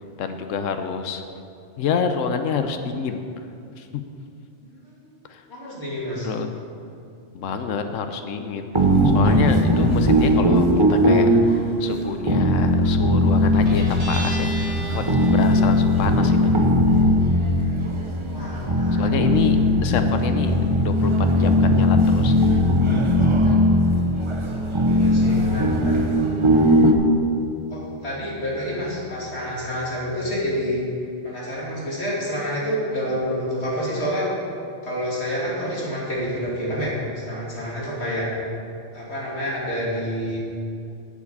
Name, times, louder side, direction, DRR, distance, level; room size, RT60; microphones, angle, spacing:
voice 1, 0.2-1.2 1.8-3.2 3.8-4.0 5.3-5.4 6.2-6.5 7.3-8.9 9.1-16.5 19.0-19.6 19.8-20.5 20.8-22.7, left 6 dB, 85° left, 7 dB, 1.1 m, -28 dB
voice 2, 4.6-5.1 5.5-6.3 18.2-19.2 24.8-26.6 27.7-30.8 31.2-34.3 34.8-38.3 38.9-40.4, equal, 55° left, -6 dB, 3.2 m, -28 dB
sound 1, 8.7-26.9, left 1 dB, 25° right, 0.9 m, -19 dB
Guitar, 13.5-30.7, left 2 dB, 45° right, 3.4 m, -35 dB
8.7 x 7.2 x 8.5 m, 2.5 s
omnidirectional pair, 1.3 m